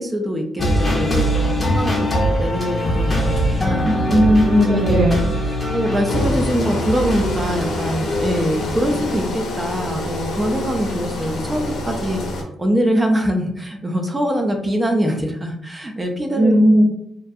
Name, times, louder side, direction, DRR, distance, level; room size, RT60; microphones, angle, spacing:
voice 1, 0.0-3.9 4.6-5.1 5.4-12.2 12.6-16.5, equal, 20° right, 3 dB, 0.4 m, -23 dB
sound 1, 0.6-9.3, equal, 25° left, 0.6 m, -22 dB
voice 2, 3.8-5.2 16.3-16.8, equal, 85° right, -4 dB, 1.1 m, -15 dB
Engine, 6.1-12.4, left 2 dB, 70° left, 0.5 m, -27 dB
2.4 x 2.2 x 2.6 m, 0.73 s
cardioid pair, 90°, 0 cm